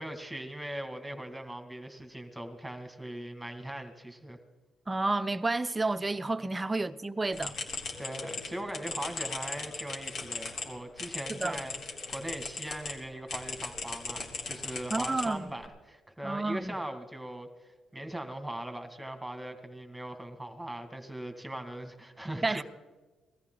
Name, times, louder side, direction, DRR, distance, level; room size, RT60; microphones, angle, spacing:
voice 1, 0.0-4.4 8.0-11.7 12.1-17.5 17.9-22.6, right 1 dB, 5° right, 2.1 m, -40 dB
voice 2, 4.9-7.5 11.3-11.6 14.9-15.5 16.2-16.7 22.4-22.6, right 2 dB, 20° right, 0.7 m, -30 dB
sound 1, 7.3-12.9 13.3-15.7, left 4 dB, 60° left, 3.3 m, -38 dB
20.0 x 14.0 x 3.9 m
cardioid pair, 90°, 0 cm